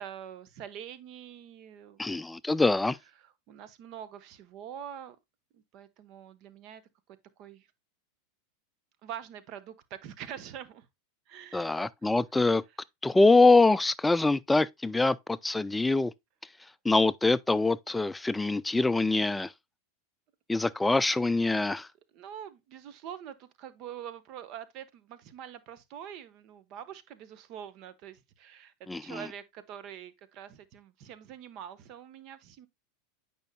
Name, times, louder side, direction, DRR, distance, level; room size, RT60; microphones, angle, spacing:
voice 1, 0.0-2.0 3.2-5.2 5.5-6.8 7.4-7.7 9.0-10.9 11.3-12.1 22.1-28.7 29.0-32.7, right 9 dB, 50° right, 1.1 m, -45 dB
voice 2, 2.0-3.0 11.5-12.6 13.0-16.1 16.8-19.5 20.5-21.9 28.9-29.2, left 3 dB, 10° left, 0.4 m, -24 dB
8.9 x 5.4 x 2.2 m
hypercardioid pair, 105°, 0 cm